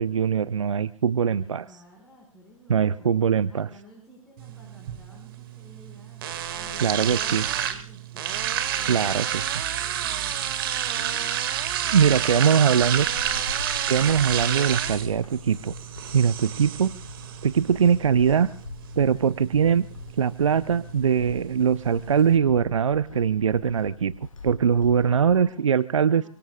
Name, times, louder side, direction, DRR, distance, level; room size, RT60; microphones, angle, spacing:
voice 1, 0.0-1.6 2.7-3.7 6.8-7.5 8.9-9.4 11.9-13.1 13.9-15.7 16.1-16.9 17.4-18.5 19.0-19.9 20.2-24.1 24.4-26.3, right 7 dB, 65° right, 16 dB, 0.7 m, -21 dB
voice 2, 1.2-3.1 3.5-6.2 6.5-11.3 11.6-13.5 24.9-25.8 26.1-26.3, equal, ahead, -3 dB, 5.7 m, -52 dB
sound 1, 4.4-22.4, right 10 dB, 40° right, 2.3 m, -30 dB
Walk footsteps / Squeak, 12.8-25.5, left 4 dB, 70° left, 2.2 m, -43 dB
25.0 x 22.5 x 2.4 m, 0.36 s
figure-of-eight pair, 130°, 18 cm